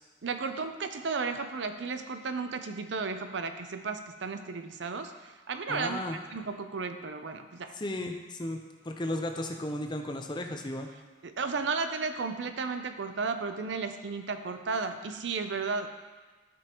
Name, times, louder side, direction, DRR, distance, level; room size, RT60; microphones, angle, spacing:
voice 1, 0.2-6.0 6.3-7.7 11.2-15.9, right 4 dB, 75° right, 8 dB, 0.6 m, -34 dB
voice 2, 5.7-6.2 7.7-8.6 8.8-10.9, left 1 dB, 25° left, 4 dB, 0.6 m, -34 dB
13.0 x 5.2 x 3.0 m, 1.3 s
head